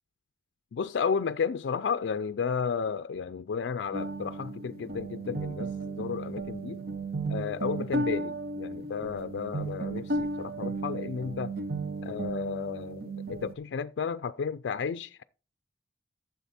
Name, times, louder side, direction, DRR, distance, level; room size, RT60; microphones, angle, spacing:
voice 1, 0.7-6.8 7.3-11.6 12.0-15.2, left 6 dB, 75° left, 0.4 m, -33 dB
sound 1, 3.9-13.5, right 2 dB, 60° right, 1.0 m, -34 dB
11.5 x 7.3 x 4.2 m
head